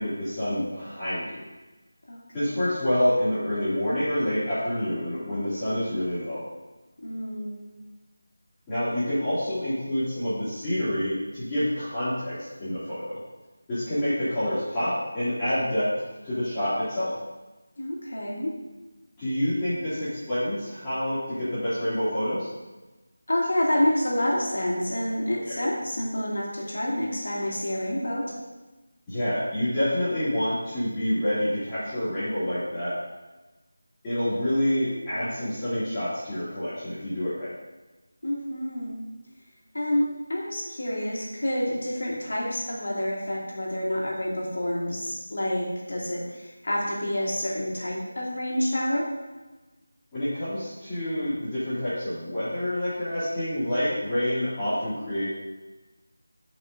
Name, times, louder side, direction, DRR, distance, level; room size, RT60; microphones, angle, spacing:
voice 1, 0.0-1.4 2.3-6.4 8.7-13.2 13.7-15.9 16.2-17.1 19.2-22.5 29.1-32.9 34.0-37.5 50.1-55.3, equal, 15° left, -16 dB, 2.4 m, -27 dB
voice 2, 2.1-2.7 7.0-7.7 17.8-18.5 23.3-28.3 38.2-39.0 39.7-49.1, left 1 dB, 65° left, -4 dB, 2.4 m, -28 dB
11.0 x 5.3 x 2.6 m, 1.2 s
figure-of-eight pair, 165°, 0 cm